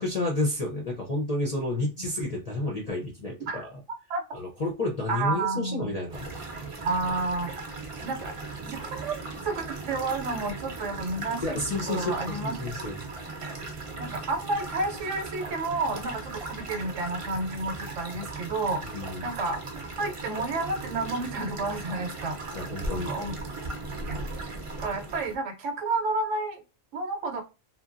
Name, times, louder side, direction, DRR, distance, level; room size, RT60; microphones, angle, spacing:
voice 1, 0.0-3.7 4.3-6.5 11.4-13.0 18.8-19.3 22.5-23.1, left 2 dB, 45° left, -1 dB, 0.5 m, -30 dB
voice 2, 5.1-6.0 6.8-7.7 8.0-8.3 8.6-11.6 11.9-12.5 13.4-13.6 14.0-18.9 19.2-19.6 20.0-22.4 22.9-23.3 24.1-24.2 24.8-26.6 26.9-27.4, right 3 dB, 70° right, 5 dB, 0.9 m, -31 dB
sound 1, 6.1-25.4, right 3 dB, 40° right, 0.5 m, -38 dB
2.8 x 2.1 x 2.4 m, 0.30 s
omnidirectional pair, 1.3 m